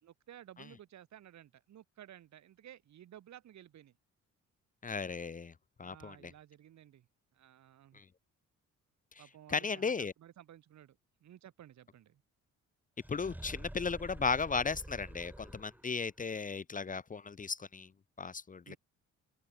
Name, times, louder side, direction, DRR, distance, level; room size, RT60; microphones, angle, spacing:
voice 1, 0.0-4.0 5.8-7.1 7.3-8.0 9.2-12.2 18.7-18.8, right 11 dB, 65° right, 2.4 m, -55 dB
voice 2, 4.8-5.5 5.8-6.3 7.9-8.0 9.5-10.1 13.1-17.9 18.2-18.8, left 5 dB, 25° left, 0.8 m, -35 dB
sound 1, 13.0-16.0, right 1 dB, 5° right, 1.9 m, -48 dB
cardioid pair, 90°, 30 cm